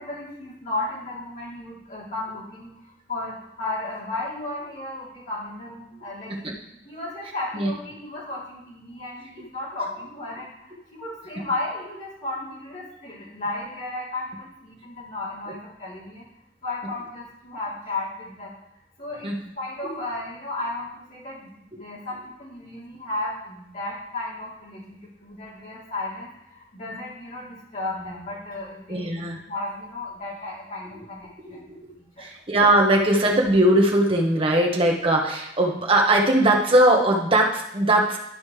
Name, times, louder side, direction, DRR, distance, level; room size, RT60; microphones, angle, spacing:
voice 1, 0.0-2.7 3.1-6.4 6.8-10.5 10.9-16.2 16.6-18.5 19.0-19.3 19.6-29.1 29.5-31.7 32.2-32.3, left 2 dB, 50° left, -8 dB, 3.5 m, -34 dB
voice 2, 28.9-29.4 31.4-31.9 32.2-38.2, right 1 dB, 30° right, 0 dB, 1.2 m, -20 dB
12.0 x 5.2 x 3.3 m, 0.84 s
head